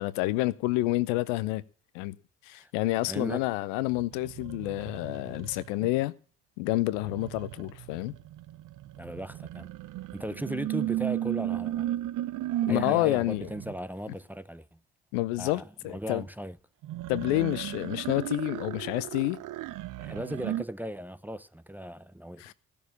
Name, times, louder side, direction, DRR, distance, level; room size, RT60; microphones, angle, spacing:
voice 1, 0.0-1.6 1.9-2.2 2.4-6.1 6.6-8.1 12.7-13.5 15.1-16.2 17.1-19.4 22.4-22.5, left 18 dB, 75° left, 0.7 m, -29 dB
voice 2, 3.1-3.4 9.0-9.7 10.1-11.9 12.7-14.8 15.4-16.6 20.0-22.5, equal, 5° right, 0.7 m, -37 dB
sound 1, 3.9-5.9 6.9-13.8 16.8-20.6, right 14 dB, 55° right, 0.7 m, -35 dB
16.0 x 6.9 x 8.3 m
hypercardioid pair, 45°, 37 cm